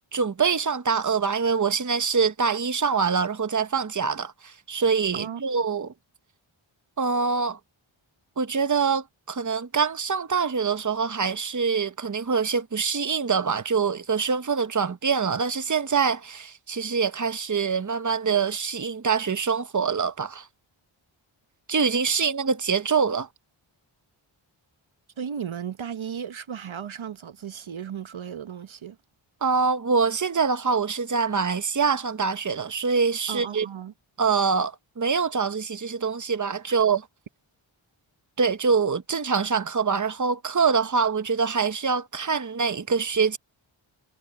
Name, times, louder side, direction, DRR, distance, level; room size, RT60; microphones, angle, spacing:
voice 1, 0.1-5.9 7.0-7.6 8.4-20.5 21.7-23.3 29.4-33.7 34.2-37.0 38.4-43.4, right 5 dB, 35° right, 1.1 m, -24 dB
voice 2, 25.2-29.0 33.3-33.9 36.8-36.9, right 8 dB, 70° right, 1.0 m, -35 dB
cardioid pair, 55°, 50 cm